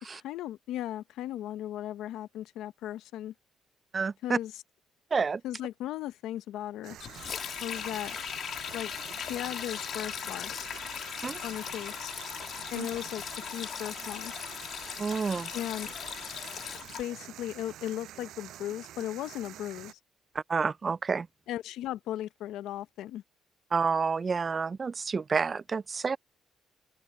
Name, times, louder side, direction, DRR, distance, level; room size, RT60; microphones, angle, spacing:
voice 1, 0.1-3.3 4.2-4.5 5.4-7.0 7.6-8.2 8.7-8.9 9.2-10.5 11.4-12.1 12.7-14.3 15.5-15.9 17.0-20.0 21.5-23.2, left 12 dB, 90° left, 0.8 m, -37 dB
voice 2, 3.9-4.4 5.1-5.4 11.2-11.4 12.8-12.9 15.0-15.5 20.3-21.3 23.7-26.2, right 5 dB, 35° right, 0.4 m, -29 dB
sound 1, 6.8-19.9, right 13 dB, 80° right, 6.1 m, -47 dB
Sink (filling or washing), 7.0-17.0, left 8 dB, 65° left, 2.0 m, -38 dB
open air
cardioid pair, 90°, 0 cm